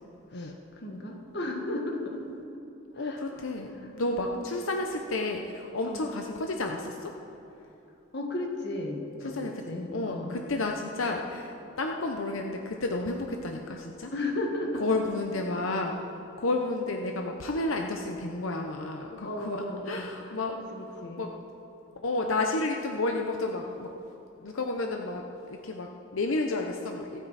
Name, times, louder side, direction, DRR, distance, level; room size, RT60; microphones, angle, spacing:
voice 1, 0.3-2.2 2.9-3.5 3.7-4.3 5.8-6.1 8.1-10.4 14.1-15.0 19.2-21.3, left 1 dB, 55° left, 2 dB, 1.7 m, -35 dB
voice 2, 2.9-7.1 9.3-9.5 9.9-14.1 14.8-16.0 16.4-20.6 21.2-21.3 22.0-23.9 24.4-27.3, left 2 dB, 85° left, 3 dB, 0.8 m, -31 dB
24.5 x 9.1 x 4.2 m, 2.9 s
head